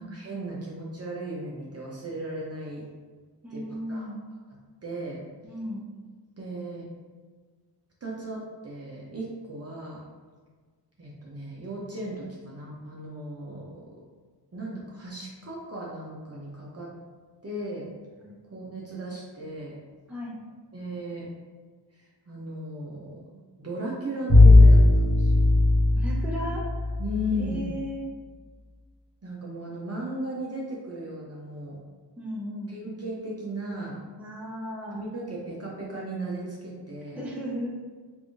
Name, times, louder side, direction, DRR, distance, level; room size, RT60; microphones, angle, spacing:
voice 1, 0.0-2.8 3.5-4.1 4.5-5.2 6.4-6.9 8.0-10.0 11.0-13.9 14.5-16.9 17.4-17.9 18.5-19.8 20.7-21.3 22.3-25.5 27.0-27.7 29.2-31.8 32.7-34.0 34.9-37.3, right 1 dB, 35° right, -4 dB, 0.7 m, -36 dB
voice 2, 3.4-4.2 5.4-5.9 18.2-18.4 20.1-20.4 25.9-26.9 27.4-28.0 32.2-32.8 34.2-35.0 37.1-37.7, equal, 5° right, -5 dB, 0.8 m, -35 dB
Bowed string instrument, 24.3-27.4, left 2 dB, 35° left, 1.2 m, -17 dB
3.5 x 2.6 x 3.5 m, 1.5 s
wide cardioid pair, 110°, 42 cm